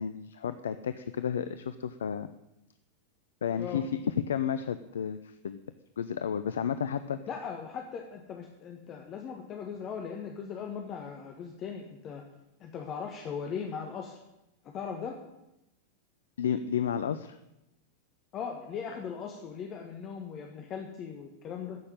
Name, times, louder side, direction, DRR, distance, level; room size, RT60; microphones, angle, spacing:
voice 1, 0.0-2.3 3.4-5.6 6.0-7.2 16.4-17.4, left 8 dB, 65° left, 12 dB, 0.5 m, -32 dB
voice 2, 7.3-12.2 12.6-14.2 14.6-15.2 18.3-21.8, left 6 dB, 30° left, 2 dB, 1.5 m, -39 dB
14.5 x 6.5 x 9.1 m, 0.91 s
figure-of-eight pair, 90°, 0 cm